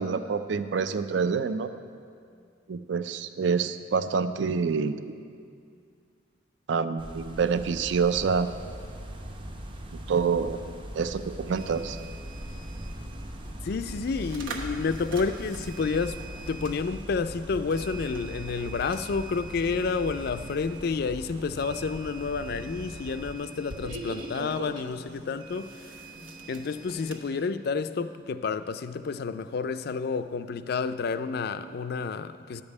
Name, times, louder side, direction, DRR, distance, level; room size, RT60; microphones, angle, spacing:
voice 1, 0.0-1.7 2.7-5.1 6.7-8.5 10.1-12.0, right 5 dB, 65° right, 0.4 m, -27 dB
sound 1, 7.0-23.3, equal, 25° right, 0.6 m, -42 dB
sound 2, 7.8-20.5, equal, 50° right, 1.1 m, -47 dB
sound 3, 11.5-27.2, right 2 dB, 85° right, 1.2 m, -43 dB
voice 2, 13.6-16.2 16.5-25.9 26.5-32.6, left 4 dB, 55° left, 0.4 m, -30 dB
11.5 x 5.3 x 8.1 m
head